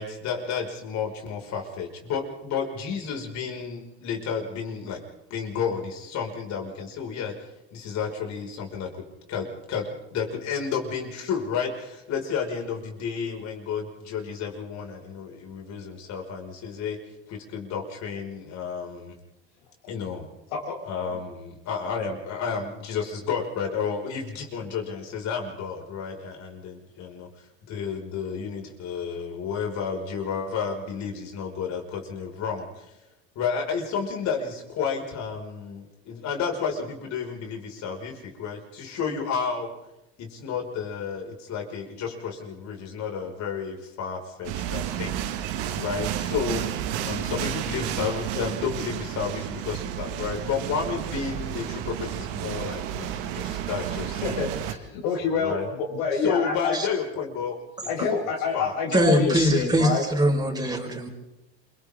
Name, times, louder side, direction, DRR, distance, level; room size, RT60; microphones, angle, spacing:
voice 1, 0.0-5.0 5.3-7.4 7.7-17.0 17.3-19.2 19.9-20.3 20.8-32.9 33.4-39.7 40.2-45.2 45.7-46.7 47.0-54.5 55.3-55.7 56.1-57.6 58.5-58.7, left 6 dB, 55° left, 1 dB, 5.8 m, -31 dB
voice 2, 20.5-20.8 54.2-56.8 57.8-60.0, left 5 dB, 80° left, 0 dB, 7.5 m, -27 dB
sound 1, 44.4-54.7, right 11 dB, 75° right, 2.0 m, -31 dB
voice 3, 58.9-61.1, right 1 dB, 10° right, 1 dB, 5.1 m, -22 dB
29.0 x 24.5 x 3.8 m, 0.96 s
supercardioid pair, 100°, 33 cm